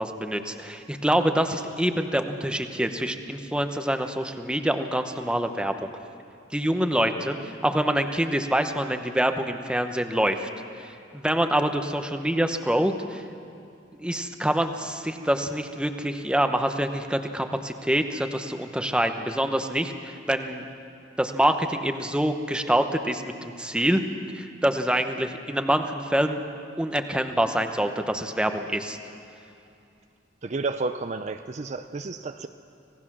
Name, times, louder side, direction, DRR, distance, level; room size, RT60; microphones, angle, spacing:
voice 1, 0.0-5.9 6.5-7.4 7.6-10.5 10.8-13.2 14.0-20.6 21.2-24.0 24.3-26.4 26.8-29.0, right 1 dB, 5° right, 7 dB, 1.0 m, -26 dB
voice 2, 30.4-32.5, right 3 dB, 40° right, 8 dB, 0.5 m, -31 dB
26.0 x 17.5 x 6.1 m, 2.6 s
head